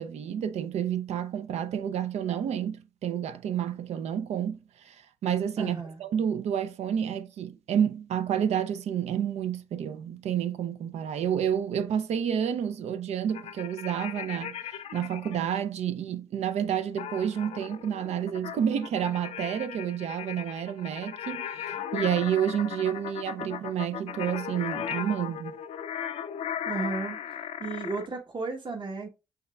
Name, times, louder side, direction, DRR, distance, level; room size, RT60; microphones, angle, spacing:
voice 1, 0.0-14.6 14.9-25.6, right 9 dB, 80° right, 0.5 m, -30 dB
voice 2, 5.6-6.0 26.6-27.2 27.6-29.1, right 4 dB, 45° right, 1.2 m, -33 dB
sound 1, 13.3-15.4 17.0-28.1, left 9 dB, 75° left, 0.4 m, -37 dB
5.6 x 3.3 x 2.3 m
supercardioid pair, 50°, 11 cm